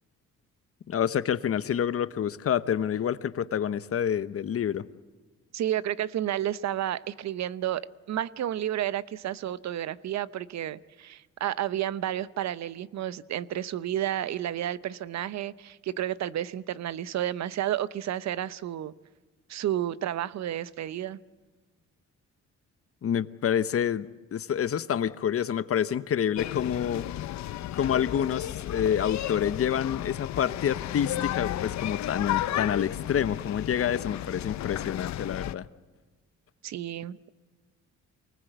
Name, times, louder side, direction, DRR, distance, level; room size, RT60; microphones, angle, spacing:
voice 1, 0.9-4.8 23.0-24.1 24.3-27.1 27.7-35.7, left 9 dB, 50° left, 14 dB, 1.0 m, -28 dB
voice 2, 5.5-18.9 19.5-21.2 36.6-37.2, right 12 dB, 65° right, 17 dB, 0.8 m, -31 dB
sound 1, 26.4-35.5, left 13 dB, 65° left, 0.7 m, -33 dB
25.0 x 19.5 x 8.1 m, 1.3 s
cardioid pair, 90°, 30 cm